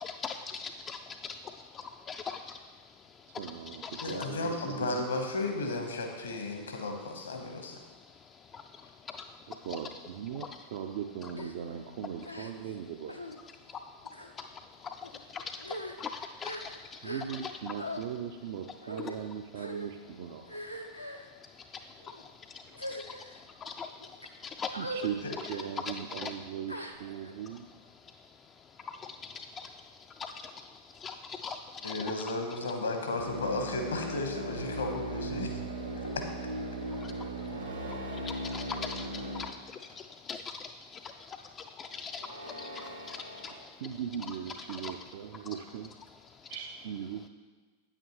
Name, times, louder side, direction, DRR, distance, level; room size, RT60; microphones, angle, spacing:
voice 1, 0.0-1.0 1.2-1.3 2.1-2.4 4.0-4.1 9.7-9.8 15.3-15.4 16.0-16.1 16.4-16.7 17.3-17.5 23.8-23.9 24.6-24.7 26.1-26.3 30.2-30.3 31.0-31.1 31.4-31.9 38.5-39.0 39.4-39.5 40.3-40.4 41.8-42.3 42.6-43.2 44.8-44.9, left 6 dB, 25° left, 6 dB, 0.3 m, -38 dB
voice 2, 3.2-5.1 9.5-13.4 17.0-20.6 24.8-27.8 43.5-45.9 46.5-47.3, right 8 dB, 55° right, 5 dB, 0.4 m, -39 dB
voice 3, 4.0-7.8 25.2-25.3 31.8-35.6 36.0-36.3, left 2 dB, 70° left, 4 dB, 1.1 m, -34 dB
sound 1, 11.3-11.5 12.2-12.8 13.1-13.4 14.0-14.3 15.0-15.2 15.6-17.5 17.8-18.0 18.8-19.2 19.5-19.9 20.5-21.3 22.0-22.2 22.7-23.4 24.0-24.3 24.7-25.1 25.4-25.7 26.7-27.3, equal, 85° left, 0.6 m, -41 dB
sound 2, 33.2-39.4, right 1 dB, 70° right, 1.0 m, -37 dB
sound 3, 37.4-38.9 39.6-40.1 42.1-43.6, equal, 85° right, 1.6 m, -45 dB
8.8 x 8.8 x 3.0 m, 1.4 s
figure-of-eight pair, 90°, 0 cm